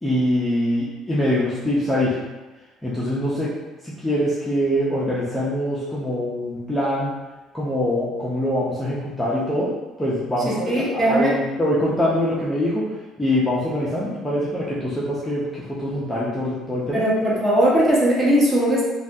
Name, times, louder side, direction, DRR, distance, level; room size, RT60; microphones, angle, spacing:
voice 1, 0.0-2.2 2.8-3.5 3.8-7.2 7.5-9.7 10.0-17.0, left 1 dB, 5° left, -8 dB, 0.6 m, -24 dB
voice 2, 10.7-11.3 16.9-18.8, equal, 20° right, -6 dB, 0.9 m, -19 dB
3.3 x 2.3 x 2.6 m, 1.1 s
cardioid pair, 130°, 0 cm